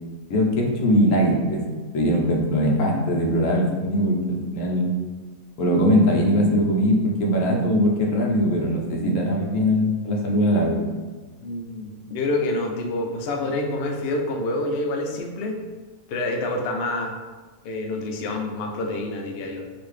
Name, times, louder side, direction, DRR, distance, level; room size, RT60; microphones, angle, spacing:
voice 1, 0.3-1.6 1.9-4.2 4.5-4.9 5.6-10.8, equal, 65° left, 0 dB, 0.9 m, -21 dB
voice 2, 11.4-15.6 16.1-17.1 17.6-19.6, left 2 dB, 90° left, 2 dB, 0.5 m, -27 dB
3.9 x 2.5 x 3.2 m, 1.3 s
omnidirectional pair, 1.6 m